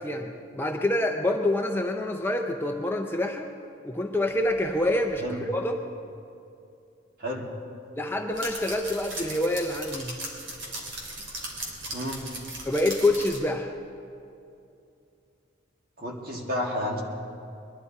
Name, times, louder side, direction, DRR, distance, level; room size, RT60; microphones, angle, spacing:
voice 1, 0.0-3.5 3.8-5.8 8.0-10.1 12.7-13.7, left 1 dB, 10° left, 3 dB, 0.5 m, -26 dB
sound 1, 4.3-5.2 8.3-13.4, right 1 dB, 65° right, 2.9 m, -38 dB
voice 2, 16.0-17.0, left 1 dB, 50° right, -1 dB, 2.0 m, -31 dB
21.5 x 12.0 x 4.2 m, 2.6 s
head